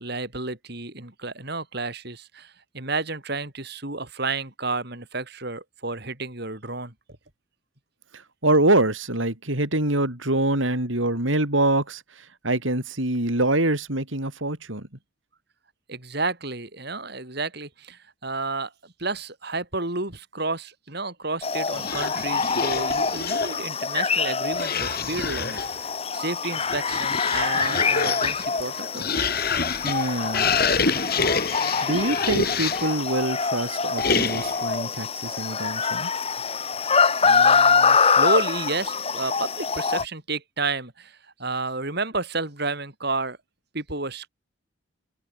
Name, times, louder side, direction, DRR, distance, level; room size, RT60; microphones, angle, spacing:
voice 1, 0.0-6.9 15.9-29.3 37.2-43.4 43.7-44.3, right 3 dB, 50° right, 4.1 m, -31 dB
voice 2, 8.1-12.0 12.4-14.9 29.8-30.9 31.8-36.1, right 2 dB, 70° right, 4.7 m, -25 dB
sound 1, 21.4-40.0, left 5 dB, 30° left, 1.6 m, -25 dB
sound 2, 21.7-23.7 24.5-25.8 26.5-33.0 34.0-34.7, left 5 dB, 50° left, 4.7 m, -27 dB
head